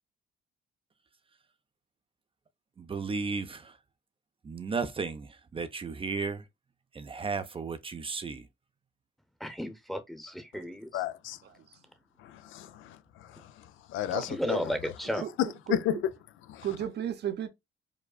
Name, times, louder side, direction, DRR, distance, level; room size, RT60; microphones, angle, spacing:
voice 1, 2.8-3.8 4.4-6.4 6.9-8.5, right 4 dB, 25° right, 0.5 m, -34 dB
voice 2, 9.4-11.0 13.4-13.5 14.3-15.2, equal, ahead, 0.8 m, -34 dB
voice 3, 10.9-11.4 12.2-13.4 13.9-14.6 15.7-16.0 16.5-16.7, left 12 dB, 80° left, 0.4 m, -33 dB
voice 4, 14.1-14.6 15.2-16.0 16.6-17.5, right 9 dB, 55° right, 0.7 m, -35 dB
4.8 x 2.3 x 2.3 m
cardioid pair, 90°, 20 cm